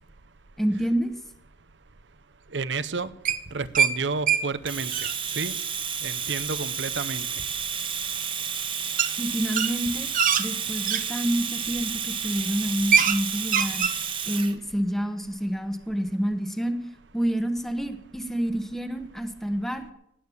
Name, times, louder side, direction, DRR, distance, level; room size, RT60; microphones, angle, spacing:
voice 1, 0.6-1.1 9.2-10.1 10.4-13.9 14.3-16.8 17.1-19.9, equal, ahead, 8 dB, 1.0 m, -28 dB
voice 2, 2.5-3.1 3.5-4.9 5.4-5.5 6.0-7.3, right 4 dB, 85° right, 14 dB, 0.8 m, -30 dB
sound 1, 3.3-3.9 4.3-4.4 4.7-5.1 7.4-7.5 9.0-9.1 9.5-11.0 11.7-12.0 12.3-12.4 12.7-13.2 13.4-14.0, right 7 dB, 50° right, 0.9 m, -23 dB
Domestic sounds home sounds, 4.7-14.5, right 7 dB, 30° right, 1.2 m, -31 dB
18.5 x 8.7 x 7.1 m, 0.79 s
head